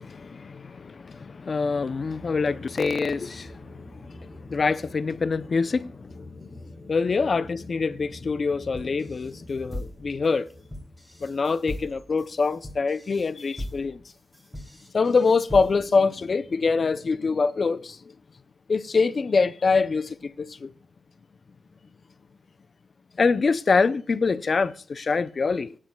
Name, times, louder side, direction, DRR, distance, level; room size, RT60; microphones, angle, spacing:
voice 1, 0.0-10.5 11.2-14.0 14.9-18.0 18.7-20.7 23.2-25.7, left 4 dB, 45° left, 0.6 m, -25 dB
sound 1, 1.6-12.9, equal, 30° right, 2.0 m, -48 dB
sound 2, 8.7-16.0, left 1 dB, ahead, 3.9 m, -39 dB
25.5 x 9.9 x 2.3 m
wide cardioid pair, 140°, 0 cm